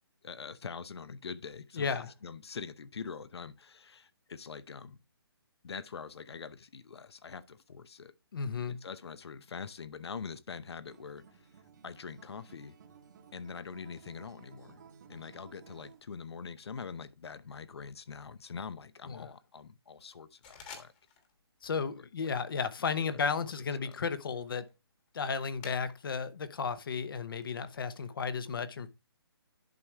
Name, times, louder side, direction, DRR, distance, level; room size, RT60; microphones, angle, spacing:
voice 1, 0.2-5.0 5.6-8.1 8.7-12.8 13.3-14.8 15.1-20.9 22.0-22.3 23.1-23.5 23.8-24.0, left 5 dB, 75° left, 0.7 m, -44 dB
voice 2, 1.8-2.1 8.3-8.8 19.1-19.3 21.6-24.7 25.1-28.9, left 5 dB, 55° left, 0.9 m, -34 dB
Acoustic guitar, 10.9-16.0, right 6 dB, 45° right, 1.0 m, -57 dB
sound 1, 20.4-21.4 21.6-22.0 22.5-26.2 26.6-28.1, left 6 dB, 20° left, 1.3 m, -54 dB
10.5 x 4.9 x 3.3 m
hypercardioid pair, 160°, 14 cm